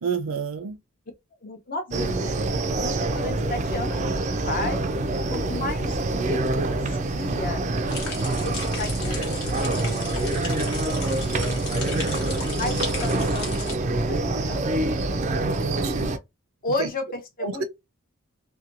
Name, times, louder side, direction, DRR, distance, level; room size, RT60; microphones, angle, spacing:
voice 1, 0.0-0.8 11.9-12.3 15.4-16.2 16.8-16.9 17.4-17.6, right 5 dB, 85° right, 0.5 m, -30 dB
voice 2, 1.4-2.4 2.8-6.0 6.2-7.6 8.2-11.2 12.6-14.7 16.6-17.6, left 2 dB, 40° left, 0.7 m, -34 dB
sound 1, 1.9-16.2, right 2 dB, 35° right, 0.3 m, -26 dB
sound 2, 7.9-13.7, left 4 dB, 90° left, 1.1 m, -35 dB
2.8 x 2.2 x 2.5 m
head